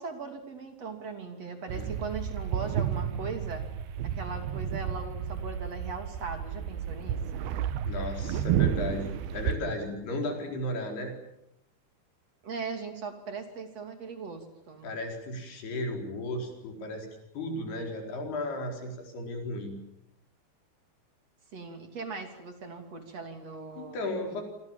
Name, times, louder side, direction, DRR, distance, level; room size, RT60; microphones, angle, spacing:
voice 1, 0.0-3.7 4.0-7.5 12.4-14.9 21.5-24.2, right 4 dB, 45° right, 6 dB, 3.6 m, -39 dB
sound 1, 1.7-9.6, right 9 dB, 80° right, 3.0 m, -31 dB
voice 2, 7.8-11.1 14.8-19.8 23.7-24.4, left 1 dB, 80° left, 3 dB, 6.6 m, -35 dB
26.5 x 26.5 x 7.4 m, 0.81 s
omnidirectional pair, 4.5 m